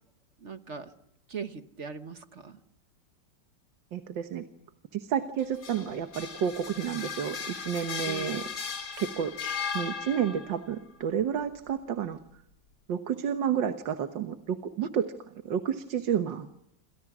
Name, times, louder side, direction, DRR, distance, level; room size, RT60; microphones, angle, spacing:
voice 1, 0.4-0.9 1.3-2.6 8.0-8.4, right 6 dB, 45° right, 9 dB, 1.3 m, -39 dB
voice 2, 3.9-4.4 4.9-8.4 9.0-9.3 9.7-12.2 12.9-16.5, right 8 dB, 90° right, 8 dB, 1.9 m, -30 dB
sound 1, 5.4-10.6, left 6 dB, 60° left, 3.6 m, -36 dB
28.0 x 27.5 x 6.1 m, 0.77 s
omnidirectional pair, 1.9 m